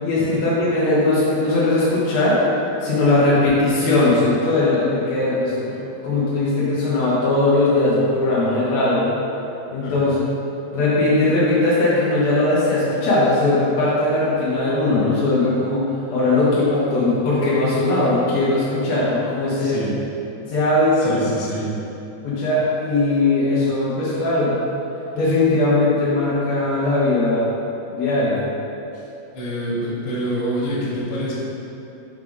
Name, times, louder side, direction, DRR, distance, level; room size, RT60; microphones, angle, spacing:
voice 1, 0.0-2.5 2.8-9.2 9.7-10.2 10.7-19.8 20.5-21.2 22.2-24.6 25.1-27.5 27.9-28.5, left 2 dB, 85° left, -8 dB, 1.5 m, -19 dB
voice 2, 19.6-20.0 21.0-21.7 29.3-31.3, equal, 50° left, -8 dB, 1.8 m, -26 dB
6.5 x 3.6 x 5.3 m, 2.9 s
omnidirectional pair, 4.7 m